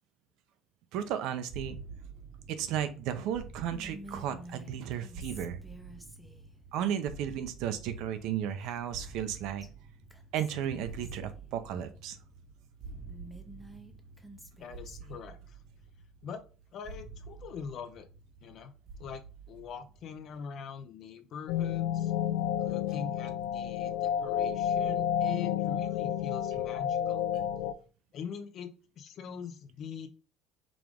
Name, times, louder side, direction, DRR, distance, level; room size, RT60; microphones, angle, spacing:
voice 1, 0.9-1.8 2.5-5.6 6.7-9.7 10.3-12.2 27.3-27.4, right 9 dB, 65° right, 10 dB, 0.6 m, -34 dB
sound 1, 1.5-20.4, right 4 dB, 25° right, 0.8 m, -49 dB
Whispering, 3.7-6.5 8.6-9.3 9.6-9.7 10.1-11.2 13.1-15.2, right 1 dB, ahead, 0.6 m, -50 dB
voice 2, 14.6-15.6 16.2-16.4 16.7-18.1 18.4-18.7 19.0-19.2 19.5-22.1 22.6-27.2 28.1-30.1, left 6 dB, 50° left, 8 dB, 0.6 m, -43 dB
sound 2, 21.5-27.7, left 10 dB, 90° left, 0.3 m, -30 dB
4.9 x 2.5 x 3.5 m, 0.35 s
cardioid pair, 130°, 0 cm